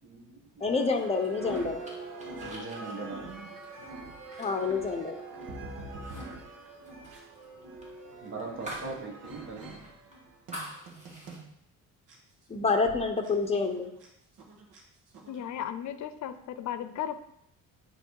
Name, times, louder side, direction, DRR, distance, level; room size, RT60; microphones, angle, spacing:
voice 1, 0.0-0.6 1.9-2.0 2.3-3.7 8.0-9.9, right 3 dB, 40° right, -1 dB, 1.6 m, -41 dB
voice 2, 0.6-1.8 4.4-5.1 12.5-13.9, left 4 dB, 20° left, 5 dB, 0.9 m, -27 dB
sound 1, 0.6-11.5 12.1-12.2 12.8-13.0 13.2-13.3 13.6-14.1 14.4-14.8 15.1-15.4, right 2 dB, 75° right, 1.5 m, -44 dB
sound 2, 0.9-5.6 5.9-6.3 6.5-9.0 9.3-9.4 9.8-11.4, right 1 dB, 20° right, 2.0 m, -46 dB
voice 3, 15.3-17.2, left 10 dB, 60° left, 11 dB, 0.7 m, -35 dB
9.3 x 3.3 x 4.8 m, 0.75 s
cardioid pair, 110°, 32 cm